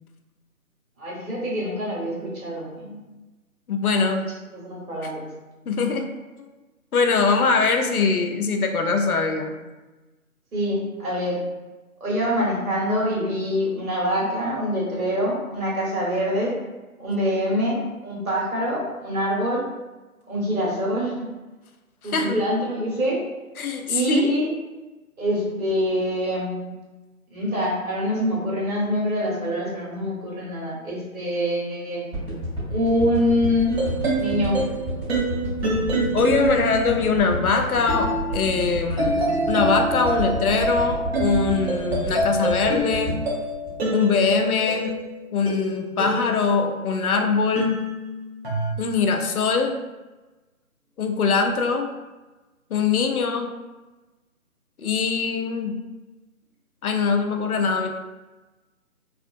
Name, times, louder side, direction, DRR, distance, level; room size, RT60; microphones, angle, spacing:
voice 1, 1.0-3.0 4.5-5.3 10.5-11.4 12.0-16.5 17.0-19.6 20.3-21.2 22.0-23.2 23.9-24.5 25.2-26.6 27.3-32.0 32.7-33.7 34.2-34.6, equal, 65° right, -5 dB, 1.5 m, -25 dB
voice 2, 3.7-4.2 5.7-6.1 6.9-9.6 22.0-22.3 23.6-24.3 36.1-43.2 43.9-44.9 45.3-47.8 48.8-49.7 51.0-51.9 52.7-53.5 54.8-55.7 56.8-57.9, left 4 dB, 75° left, 5 dB, 0.6 m, -22 dB
sound 1, 32.1-44.4 44.9-45.0, equal, 20° right, 1.4 m, -30 dB
sound 2, 33.7-47.0 47.6-48.7, right 1 dB, 45° right, 1.0 m, -27 dB
2.8 x 2.4 x 2.6 m, 1.2 s
figure-of-eight pair, 160°, 44 cm